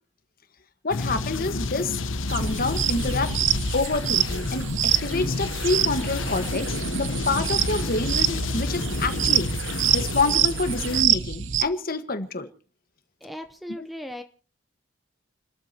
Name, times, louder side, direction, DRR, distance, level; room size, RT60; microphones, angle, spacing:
voice 1, 0.8-2.0 2.3-9.5 9.9-12.5 13.8-13.9, left 3 dB, 50° left, 8 dB, 1.5 m, -27 dB
sound 1, 0.9-11.0, left 3 dB, 85° left, 1.0 m, -30 dB
sound 2, 2.3-11.6, right 9 dB, 75° right, 0.8 m, -26 dB
voice 2, 13.2-14.2, left 1 dB, ahead, 7 dB, 0.9 m, -37 dB
30.0 x 13.5 x 2.9 m, 0.37 s
head